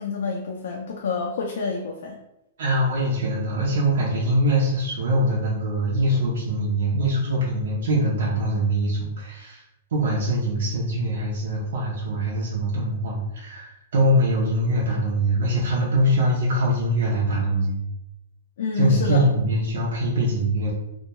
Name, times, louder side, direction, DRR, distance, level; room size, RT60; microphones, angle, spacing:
voice 1, 0.0-2.2 18.6-19.2, left 4 dB, 60° left, 0 dB, 0.3 m, -27 dB
voice 2, 2.6-9.6 9.9-17.9 18.7-20.7, right 1 dB, 65° right, -5 dB, 0.6 m, -23 dB
2.2 x 2.2 x 2.9 m, 0.90 s
hypercardioid pair, 180°, 0 cm